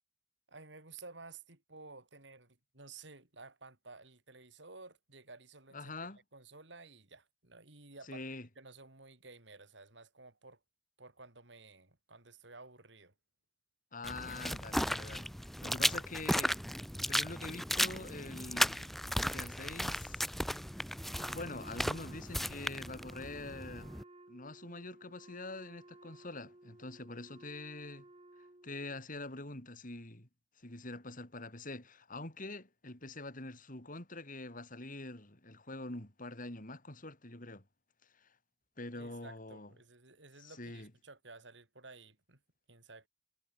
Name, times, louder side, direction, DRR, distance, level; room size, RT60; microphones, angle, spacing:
voice 1, 0.5-5.9 6.3-8.3 8.5-10.6 11.0-13.1 38.9-42.4 42.7-43.1, right 3 dB, 65° right, 4.8 m, -54 dB
voice 2, 5.7-6.2 8.1-8.5 13.9-16.6 17.0-20.3 21.2-28.0 28.6-30.3 30.6-37.6 38.2-38.3 38.8-39.7 40.4-40.9, left 2 dB, 45° left, 4.4 m, -45 dB
sound 1, 14.0-24.0, equal, ahead, 1.0 m, -35 dB
Wind instrument woodwind instrument, 21.1-29.0, right 2 dB, 30° right, 2.2 m, -57 dB
head